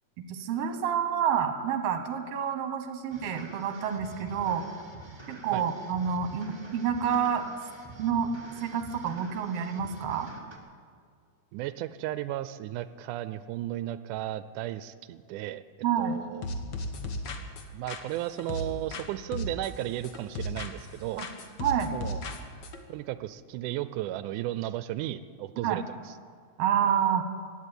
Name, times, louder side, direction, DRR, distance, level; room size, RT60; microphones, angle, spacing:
voice 1, 0.3-4.7 5.3-7.5 8.0-8.3 8.6-10.3 15.8-16.2 21.2-21.3 21.6-21.9 25.6-25.8 26.6-27.3, right 8 dB, 60° right, 8 dB, 2.1 m, -28 dB
sound 1, 3.1-10.6, right 2 dB, 25° right, 0.5 m, -47 dB
voice 2, 11.5-15.6 16.0-16.4 17.7-21.3 21.9-22.2 22.9-26.1, right 14 dB, 85° right, 13 dB, 2.0 m, -34 dB
sound 2, 16.4-19.1 19.3-20.9 21.2-22.8, left 1 dB, 60° left, 1.2 m, -36 dB
15.5 x 9.1 x 9.9 m, 2.1 s
omnidirectional pair, 3.5 m